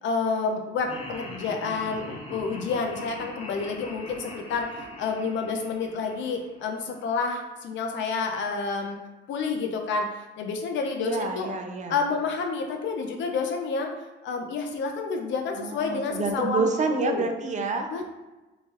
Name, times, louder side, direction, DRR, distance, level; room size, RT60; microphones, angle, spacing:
voice 1, 0.0-9.0 9.3-10.1 10.4-11.5 11.9-13.9 14.2-16.6 16.9-17.3 17.9-18.1, left 4 dB, 70° left, 3 dB, 0.4 m, -29 dB
Laughter, 0.9-7.1, left 1 dB, 30° left, 0.6 m, -42 dB
voice 2, 11.0-12.0 15.6-17.9, right 4 dB, 40° right, 5 dB, 0.4 m, -28 dB
3.1 x 2.2 x 2.8 m, 1.1 s
cardioid pair, 90°, 20 cm